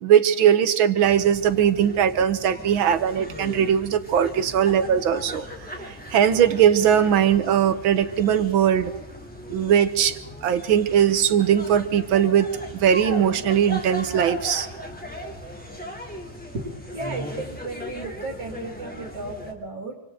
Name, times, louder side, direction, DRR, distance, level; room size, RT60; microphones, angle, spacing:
voice 1, 0.0-5.5 5.8-8.9 9.5-12.5 12.7-14.7, right 9 dB, 90° right, 11 dB, 2.0 m, -20 dB
sound 1, 1.0-19.5, equal, 5° left, 3.0 m, -38 dB
voice 2, 16.5-20.0, right 2 dB, 50° right, 2 dB, 3.0 m, -35 dB
27.0 x 26.0 x 3.9 m, 0.91 s
omnidirectional pair, 2.1 m